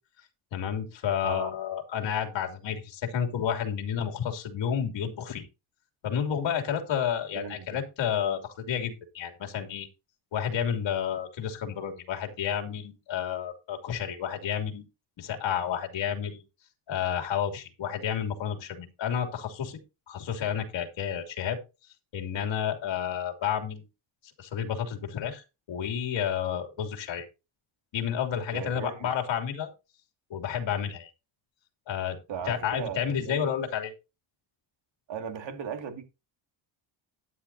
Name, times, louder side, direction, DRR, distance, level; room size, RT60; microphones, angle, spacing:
voice 1, 0.5-5.5 6.0-9.9 10.3-14.8 15.2-16.4 16.9-19.8 20.1-21.6 22.1-23.8 24.4-27.2 27.9-29.7 30.3-31.1 31.9-32.2 32.5-33.9, left 8 dB, 65° left, 3.1 m, -31 dB
voice 2, 7.3-7.8 28.5-29.1 32.3-33.5 35.1-36.0, right 7 dB, 60° right, 2.5 m, -37 dB
13.0 x 10.0 x 2.8 m
cardioid pair, 135°, 48 cm